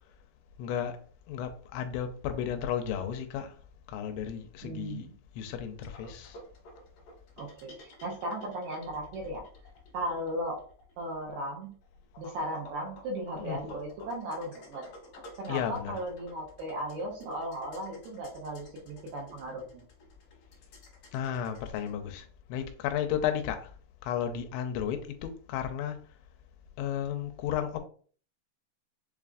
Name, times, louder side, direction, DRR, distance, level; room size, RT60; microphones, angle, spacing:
voice 1, 0.6-1.0 1.3-3.5 3.9-5.1 5.4-6.4 13.4-13.6 15.5-15.9 21.1-23.7 24.0-26.0 26.8-27.8, left 9 dB, 85° left, 2.9 m, -33 dB
voice 2, 4.6-5.1 7.4-9.5 9.9-10.6 11.0-11.7 12.2-14.9 15.4-19.8, right 1 dB, 75° right, 2.5 m, -36 dB
sound 1, 5.8-21.9, left 1 dB, 60° left, 1.6 m, -51 dB
6.9 x 2.5 x 2.4 m
omnidirectional pair, 5.2 m